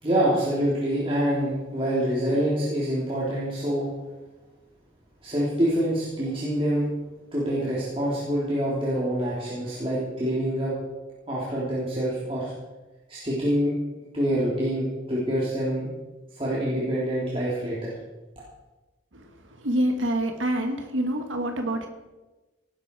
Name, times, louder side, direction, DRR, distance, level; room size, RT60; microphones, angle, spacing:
voice 1, 0.0-3.9 5.2-6.9 7.3-10.7 11.3-12.5 13.1-13.7 14.1-15.9 16.4-17.9, equal, 30° right, -7 dB, 3.4 m, -26 dB
voice 2, 19.1-21.9, right 1 dB, 85° right, 4 dB, 1.6 m, -27 dB
17.5 x 12.5 x 4.8 m, 1.1 s
head